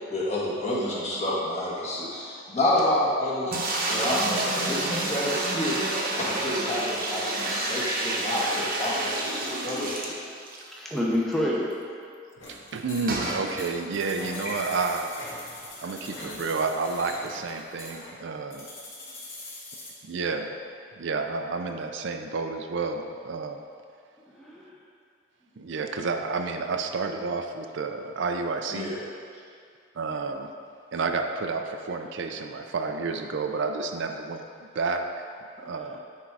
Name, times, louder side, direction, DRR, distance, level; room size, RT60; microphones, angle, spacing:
voice 1, 0.1-10.2 14.4-14.8 28.7-29.0, left 1 dB, 35° left, -6 dB, 1.6 m, -29 dB
sound 1, 3.5-10.7 11.0-11.1 11.3-11.4 13.1-13.4, right 2 dB, 50° right, 1.0 m, -29 dB
voice 2, 10.7-11.6 15.4-15.5 24.3-24.8 35.6-36.0, left 1 dB, ahead, -5 dB, 0.7 m, -29 dB
sound 2, 12.4-19.9, left 2 dB, 70° left, 1.9 m, -42 dB
voice 3, 12.5-15.2 15.8-18.7 20.0-20.6 21.0-23.6 25.6-28.9 30.0-30.5 30.9-35.3 35.6-36.0, right 4 dB, 65° right, 5 dB, 0.5 m, -30 dB
9.7 x 3.7 x 4.7 m, 2.3 s
head